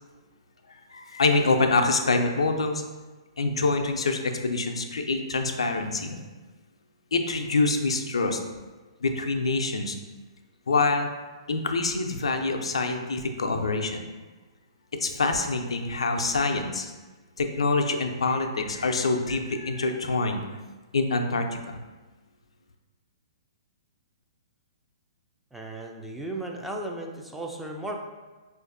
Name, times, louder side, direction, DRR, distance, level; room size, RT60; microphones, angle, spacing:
voice 1, 0.7-2.8 3.4-6.2 7.1-8.4 9.0-10.0 10.7-11.1 11.5-14.1 15.0-16.9 17.4-20.4 20.9-21.8, left 3 dB, 85° left, 5 dB, 0.4 m, -25 dB
voice 2, 25.5-28.0, right 2 dB, 5° right, 0 dB, 0.3 m, -35 dB
4.5 x 2.4 x 2.5 m, 1.3 s
hypercardioid pair, 130°, 3 cm